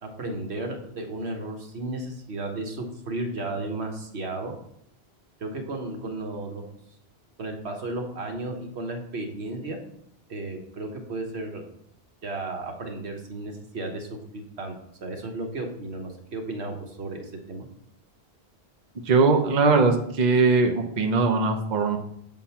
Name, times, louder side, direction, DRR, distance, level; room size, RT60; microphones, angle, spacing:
voice 1, 0.0-4.5 5.4-6.6 7.4-9.8 10.3-11.6 12.2-14.1 14.3-14.8 15.0-17.6, right 2 dB, 80° right, 3 dB, 1.4 m, -34 dB
voice 2, 19.1-22.0, right 4 dB, 45° right, 4 dB, 0.8 m, -20 dB
7.4 x 3.8 x 5.6 m, 0.73 s
omnidirectional pair, 1.1 m